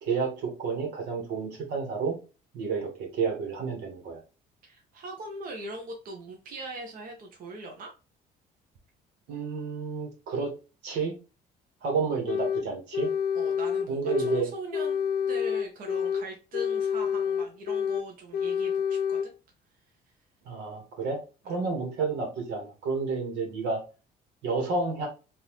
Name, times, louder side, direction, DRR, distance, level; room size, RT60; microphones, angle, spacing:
voice 1, 0.0-2.1 2.5-4.2 9.3-10.5 10.8-11.1 11.8-13.1 13.9-14.5 20.4-23.8 24.4-25.1, right 4 dB, 85° right, 2 dB, 1.5 m, -30 dB
voice 2, 4.6-7.9 13.3-19.2 21.4-21.6, right 1 dB, 55° right, 1 dB, 1.0 m, -41 dB
sound 1, 12.3-12.7 12.9-14.4 14.7-16.3 16.5-18.1 18.3-19.3, left 7 dB, 60° left, 0.5 m, -28 dB
3.7 x 2.7 x 3.0 m, 0.32 s
cardioid pair, 110°, 17 cm